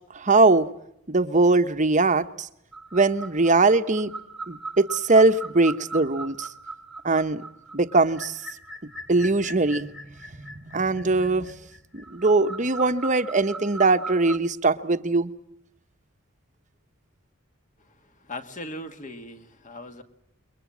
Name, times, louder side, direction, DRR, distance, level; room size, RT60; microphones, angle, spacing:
voice 1, 0.1-0.7 1.1-2.5 2.9-4.1 4.5-6.5 7.0-7.4 7.7-8.4 9.1-11.5 11.9-15.3, right 3 dB, 35° right, 9 dB, 1.0 m, -21 dB
sound 1, 2.7-14.4, right 3 dB, ahead, 1.3 m, -39 dB
voice 2, 18.2-20.0, left 1 dB, 35° left, 7 dB, 1.8 m, -38 dB
28.5 x 22.5 x 7.4 m, 0.76 s
head